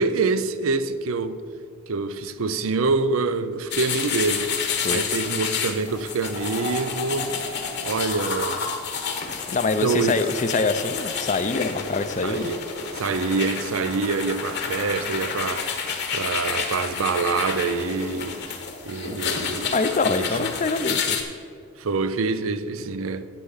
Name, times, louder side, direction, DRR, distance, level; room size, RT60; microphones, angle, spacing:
voice 1, 0.0-1.4 1.9-4.5 4.9-7.3 7.8-8.6 9.8-10.2 12.2-12.6 12.9-15.7 16.1-18.6 18.8-19.8 20.1-20.3 21.8-23.3, right 4 dB, 85° right, 0.5 m, -25 dB
sound 1, 3.7-21.2, left 6 dB, 55° left, 1.3 m, -30 dB
voice 2, 9.5-12.5 19.1-19.2 19.7-21.2, left 3 dB, 35° left, 0.5 m, -24 dB
10.0 x 7.7 x 5.6 m
head